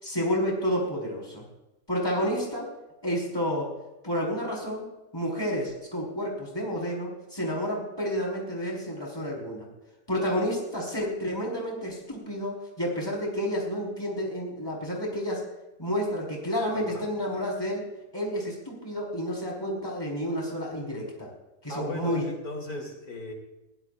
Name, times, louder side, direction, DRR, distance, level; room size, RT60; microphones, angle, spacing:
voice 1, 0.0-1.5 1.9-2.7 3.0-3.7 4.0-4.9 5.1-9.7 10.1-15.4 15.8-17.9 18.1-21.3 21.6-22.2, equal, 15° left, -2 dB, 4.8 m, -30 dB
voice 2, 16.7-17.1 21.7-23.3, left 1 dB, 85° left, 1 dB, 3.9 m, -37 dB
22.5 x 16.5 x 2.6 m, 1.0 s
omnidirectional pair, 1.5 m